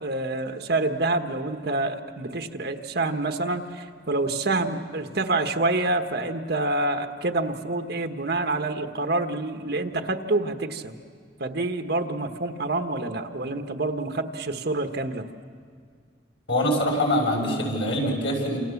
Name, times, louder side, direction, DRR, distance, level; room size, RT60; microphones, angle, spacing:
voice 1, 0.0-10.9 11.4-15.2, right 2 dB, 60° right, 6 dB, 1.4 m, -27 dB
voice 2, 16.5-18.6, equal, 80° left, -1 dB, 6.7 m, -24 dB
28.5 x 27.5 x 7.2 m, 2.1 s
head